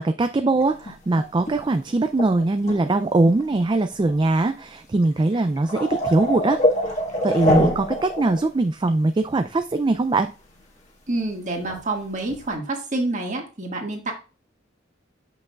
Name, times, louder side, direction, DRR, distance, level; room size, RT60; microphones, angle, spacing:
voice 1, 0.0-6.6 7.2-10.3, right 2 dB, 25° right, 9 dB, 0.3 m, -21 dB
sound 1, 0.6-1.7 2.2-2.9 3.4-3.6 3.9-4.1 4.6-4.7 5.2-8.5 8.9-9.0 11.2-11.3 11.6-11.8 12.3-12.5, equal, 35° left, 1.6 m, -24 dB
voice 2, 11.1-14.1, right 2 dB, 40° right, 1 dB, 1.8 m, -27 dB
7.8 x 6.1 x 2.4 m, 0.34 s
head